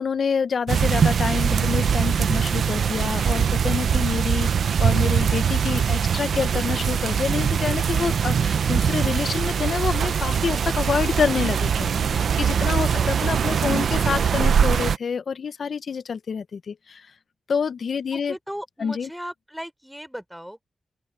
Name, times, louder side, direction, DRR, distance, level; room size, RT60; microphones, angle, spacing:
voice 1, 0.0-17.1 17.5-18.4 18.8-19.1, left 6 dB, 70° left, 1.1 m, -27 dB
sound 1, 0.7-15.0, right 7 dB, 80° right, 0.7 m, -22 dB
voice 2, 18.1-20.6, equal, 5° right, 4.0 m, -38 dB
open air
supercardioid pair, 40°, 0 cm